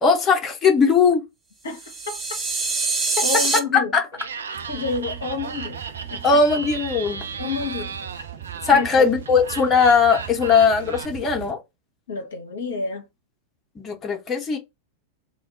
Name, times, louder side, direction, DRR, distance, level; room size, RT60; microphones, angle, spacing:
voice 1, 0.0-1.2 3.7-4.0 6.2-7.2 8.6-11.6 13.8-14.6, left 5 dB, 20° left, 0.7 m, -19 dB
voice 2, 1.6-2.2 3.2-3.9 4.7-5.8 6.1-6.4 7.4-8.0 8.7-9.1 12.1-13.0, left 4 dB, 65° left, 0.6 m, -29 dB
sound 1, 1.8-3.6, right 3 dB, 20° right, 0.7 m, -24 dB
Laughter, 4.1-11.1, right 5 dB, 70° right, 0.3 m, -35 dB
sound 2, 4.5-11.5, right 11 dB, 55° right, 0.9 m, -39 dB
2.2 x 2.1 x 3.6 m
figure-of-eight pair, 90°, 0 cm